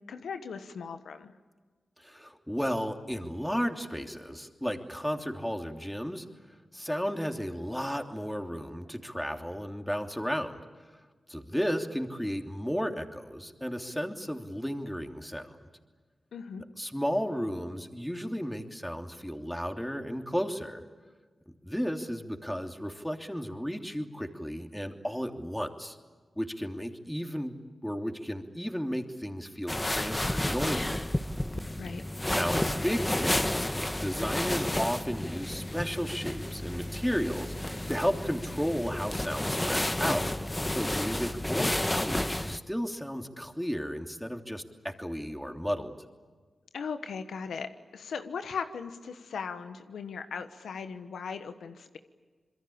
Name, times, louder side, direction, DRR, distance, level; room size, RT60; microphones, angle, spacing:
voice 1, 0.1-1.3 16.3-16.6 31.8-32.0 46.7-52.0, left 6 dB, 90° left, 9 dB, 1.2 m, -38 dB
voice 2, 2.0-6.2 6.7-10.6 10.9-11.0 11.3-15.7 16.8-20.8 21.5-26.0 26.4-27.5 27.8-30.9 32.3-33.7 34.0-40.3 40.7-46.0, equal, 5° left, 4 dB, 3.1 m, -33 dB
sound 1, 29.7-42.6, left 1 dB, 20° left, 1.5 m, -31 dB
26.5 x 22.5 x 8.7 m, 1.4 s
cardioid pair, 40°, 0 cm